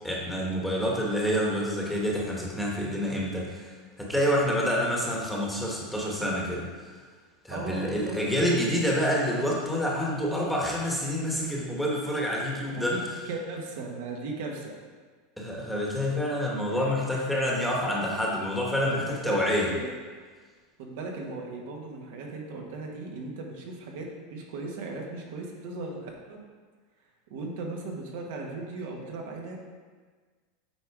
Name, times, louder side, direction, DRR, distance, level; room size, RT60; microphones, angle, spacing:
voice 1, 0.0-3.7 4.0-6.7 7.4-12.9 15.4-19.7, equal, ahead, -4 dB, 1.2 m, -27 dB
voice 2, 7.5-8.2 12.7-14.8 16.7-17.0 18.8-19.9 20.8-26.4 27.3-29.6, right 3 dB, 70° right, 0 dB, 1.3 m, -37 dB
8.6 x 3.7 x 4.7 m, 1.5 s
supercardioid pair, 150°, 0 cm